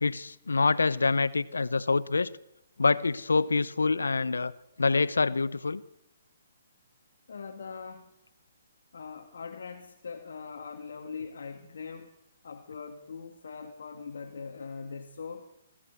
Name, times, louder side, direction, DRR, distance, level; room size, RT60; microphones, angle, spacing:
voice 1, 0.0-2.3 2.8-4.5 4.8-5.8, left 4 dB, 90° left, 0.8 m, -26 dB
voice 2, 7.3-8.1 8.9-12.2 12.4-15.6, left 5 dB, 70° left, 2.4 m, -41 dB
25.0 x 15.0 x 8.4 m
hypercardioid pair, 140°, 0 cm